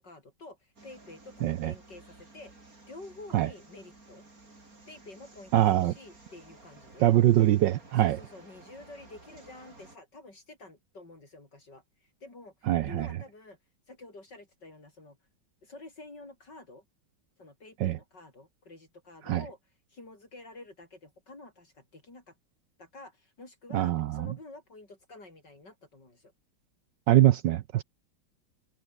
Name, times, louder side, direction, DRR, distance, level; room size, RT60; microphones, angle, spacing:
voice 1, 0.0-4.3 4.9-7.1 8.0-13.6 13.9-15.2 15.6-16.8 17.4-22.4 22.8-26.3, left 2 dB, 60° left, 6.2 m, -49 dB
sound 1, 0.8-10.0, right 2 dB, 45° right, 5.3 m, -54 dB
voice 2, 1.4-1.7 3.3-3.5 5.5-5.9 7.0-8.2 12.7-13.1 17.8-18.0 19.3-19.4 23.7-24.3 27.1-27.8, right 13 dB, 70° right, 1.3 m, -23 dB
omnidirectional pair, 2.1 m